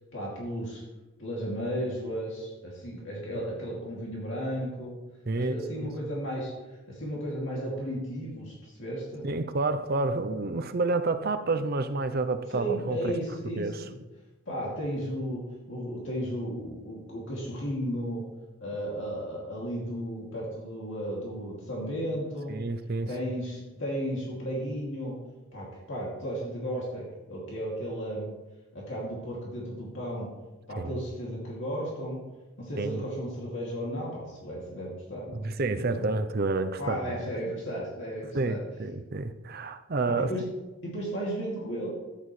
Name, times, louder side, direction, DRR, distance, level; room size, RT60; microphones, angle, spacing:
voice 1, 0.1-0.8 1.2-5.0 5.3-6.5 6.9-9.3 12.5-13.9 14.5-18.3 18.6-22.5 23.1-25.2 25.5-28.3 28.7-30.3 30.7-32.2 32.6-35.4 35.7-36.0 36.8-38.6 40.1-40.4 40.8-41.9, equal, 60° left, 2.6 m, -34 dB
voice 2, 5.3-5.9 9.2-13.2 13.5-13.9 22.5-23.1 30.8-30.9 32.8-33.0 35.4-37.2 38.3-40.3, right 3 dB, 45° right, 0.6 m, -29 dB
13.5 x 10.5 x 3.2 m
head